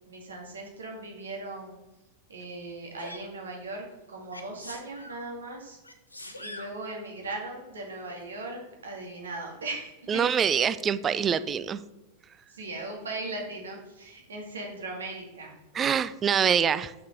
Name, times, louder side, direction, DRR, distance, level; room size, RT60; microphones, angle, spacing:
voice 1, 0.1-1.8 2.3-5.8 6.4-10.3 12.5-15.6, right 2 dB, 70° right, 1 dB, 1.9 m, -38 dB
Sneeze, 3.0-3.3 4.3-5.2 5.8-6.8 8.0-8.2, left 1 dB, 85° left, 0.8 m, -43 dB
voice 2, 10.1-11.8 15.7-16.9, right 7 dB, 25° right, 14 dB, 0.4 m, -25 dB
6.3 x 5.8 x 4.7 m, 1.1 s
figure-of-eight pair, 90°, 0 cm